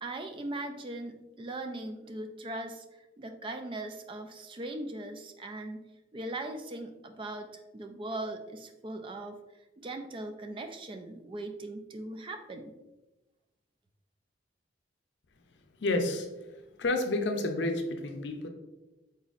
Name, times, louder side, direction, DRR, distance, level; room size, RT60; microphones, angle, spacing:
voice 1, 0.0-2.8 3.2-5.8 6.1-7.5 7.7-9.4 9.8-12.7, right 2 dB, 30° right, 6 dB, 0.3 m, -39 dB
voice 2, 15.8-16.3 16.8-18.5, left 2 dB, 75° left, 5 dB, 0.5 m, -30 dB
4.0 x 4.0 x 2.4 m, 1.0 s
head